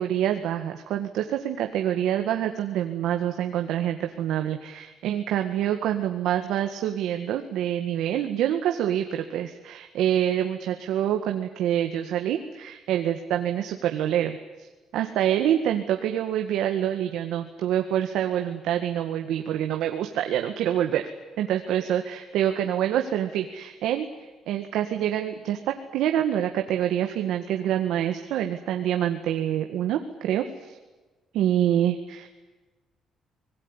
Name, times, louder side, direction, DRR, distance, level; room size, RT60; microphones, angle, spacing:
voice 1, 0.0-14.7 14.9-21.1 21.4-24.1 24.5-30.8 31.3-32.3, right 11 dB, 80° right, 5 dB, 1.9 m, -26 dB
25.5 x 20.0 x 10.0 m, 1.2 s
cardioid pair, 115°, 0 cm